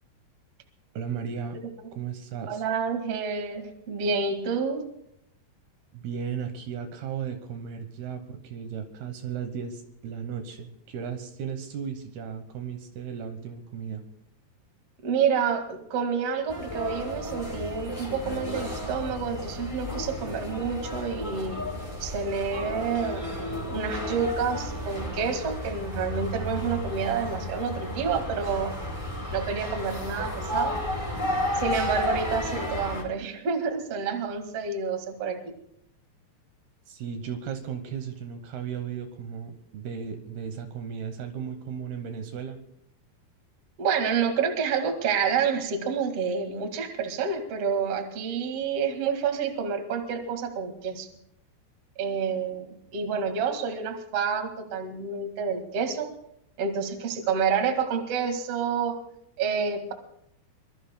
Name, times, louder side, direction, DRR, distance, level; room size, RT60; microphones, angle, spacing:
voice 1, 0.9-1.6 1.9-2.6 5.9-14.0 36.9-42.6, right 7 dB, 75° right, 7 dB, 2.9 m, -35 dB
voice 2, 2.5-4.8 15.0-21.7 22.0-23.2 23.7-28.7 29.3-30.8 31.5-35.4 43.8-51.1 52.0-56.1 56.6-59.0 59.4-59.9, right 6 dB, 45° right, 5 dB, 2.3 m, -28 dB
sound 1, 16.5-33.0, left 1 dB, 10° left, 3.8 m, -33 dB
25.0 x 21.0 x 2.2 m, 0.75 s
omnidirectional pair, 4.8 m